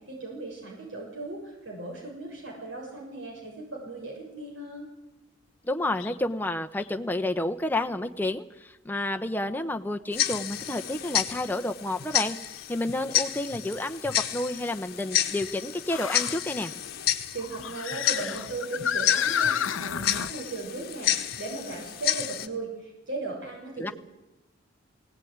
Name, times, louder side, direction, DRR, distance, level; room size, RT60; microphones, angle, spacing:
voice 1, 0.1-4.9 17.3-23.9, right 2 dB, 70° right, -2 dB, 6.6 m, -37 dB
voice 2, 5.6-12.4 12.7-16.7 23.8-23.9, left 1 dB, 10° left, 5 dB, 1.0 m, -30 dB
sound 1, 6.0-6.2 6.8-6.9 8.9-9.0 12.6-12.7 15.9-16.4 17.4-20.3, left 8 dB, 80° left, 0.7 m, -30 dB
Tick-tock, 10.1-22.5, left 11 dB, 50° left, 1.3 m, -31 dB
19.5 x 18.0 x 9.6 m, 0.98 s
head